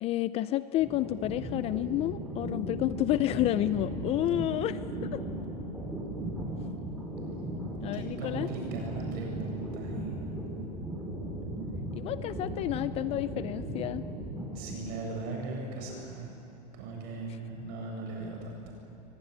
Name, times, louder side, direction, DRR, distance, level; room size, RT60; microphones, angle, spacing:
voice 1, 0.0-5.2 7.8-8.5 11.9-14.0, left 14 dB, 30° left, 15 dB, 0.5 m, -30 dB
sound 1, 0.8-15.0, right 1 dB, 5° right, 5.9 m, -37 dB
voice 2, 7.9-10.2 14.5-16.3 16.7-18.7, right 3 dB, 45° right, 1 dB, 7.6 m, -38 dB
23.5 x 20.5 x 9.8 m, 2.9 s
supercardioid pair, 140°, 21 cm